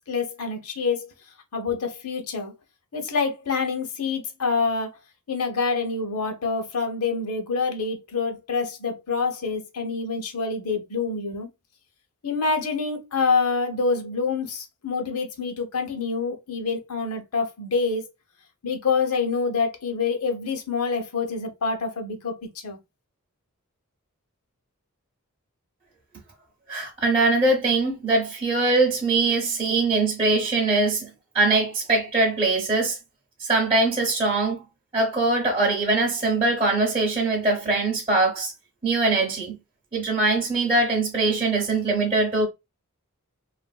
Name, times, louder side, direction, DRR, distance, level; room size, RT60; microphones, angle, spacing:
voice 1, 0.1-1.1 1.5-2.5 2.9-4.9 5.3-11.5 12.2-18.1 18.6-22.8, left 4 dB, 80° left, 0.8 m, -26 dB
voice 2, 26.7-31.1 31.3-33.0 33.4-34.6 34.9-38.5 38.8-39.6 39.9-42.5, right 3 dB, 25° right, 0.7 m, -22 dB
3.0 x 2.5 x 2.2 m
head